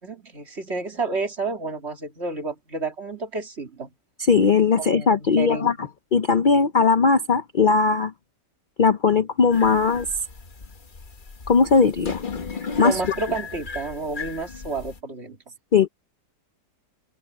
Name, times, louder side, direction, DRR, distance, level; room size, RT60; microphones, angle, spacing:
voice 1, 0.0-3.9 4.8-5.7 12.8-15.4, right 3 dB, 40° right, 2.8 m, -30 dB
voice 2, 4.3-5.7 6.1-8.1 8.8-10.1 11.5-12.2 12.8-13.0 15.7-15.9, left 5 dB, 70° left, 0.4 m, -18 dB
sound 1, 9.5-15.0, left 5 dB, 30° left, 1.2 m, -36 dB
omnidirectional pair, 1.8 m